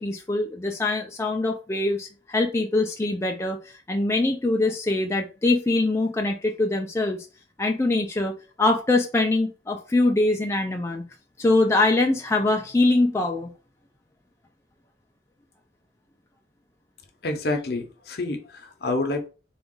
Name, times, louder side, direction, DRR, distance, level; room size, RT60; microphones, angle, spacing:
voice 1, 0.0-7.3 7.6-11.0 11.4-13.5, left 2 dB, 15° left, 2 dB, 0.3 m, -23 dB
voice 2, 17.2-19.3, left 2 dB, 55° left, 6 dB, 0.7 m, -28 dB
3.9 x 2.3 x 3.7 m, 0.34 s
head